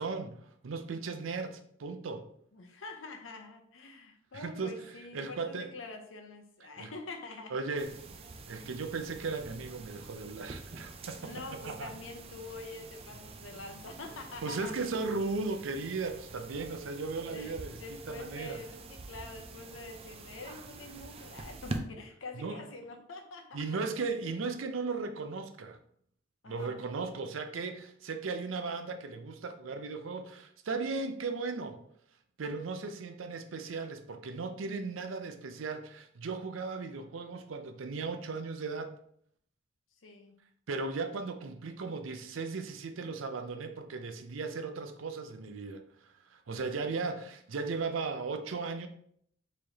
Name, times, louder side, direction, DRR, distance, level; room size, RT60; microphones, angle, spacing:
voice 1, 0.0-2.3 4.3-4.7 5.1-5.7 6.8-6.9 7.5-7.9 8.5-11.3 11.6-11.9 14.4-18.6 22.3-22.6 23.5-25.8 26.5-31.8 32.4-38.9 40.7-48.9, right 4 dB, 80° right, 7 dB, 0.5 m, -36 dB
voice 2, 2.5-7.5 11.2-14.8 17.2-23.6 26.4-26.8 40.0-40.4 46.8-47.1, left 3 dB, 75° left, 4 dB, 0.7 m, -46 dB
sound 1, 7.8-21.8, right 3 dB, 30° right, 0.4 m, -46 dB
4.7 x 3.1 x 2.7 m, 0.66 s
head